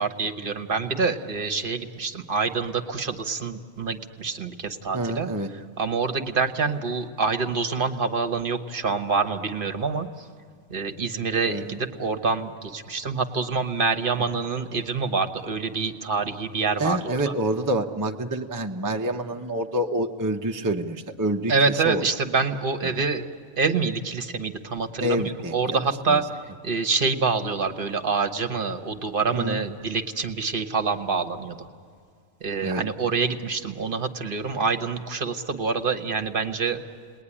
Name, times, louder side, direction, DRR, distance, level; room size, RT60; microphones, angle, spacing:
voice 1, 0.0-5.3 5.8-10.3 10.7-17.3 21.5-23.2 23.6-31.7 32.4-36.8, right 4 dB, 40° right, 6 dB, 1.1 m, -26 dB
voice 2, 4.9-5.5 11.5-11.8 16.8-22.0 25.0-25.8 26.1-26.2 29.3-29.6 32.6-32.8, right 1 dB, 20° right, 3 dB, 0.6 m, -27 dB
30.0 x 20.0 x 9.9 m, 2.2 s
omnidirectional pair, 1.4 m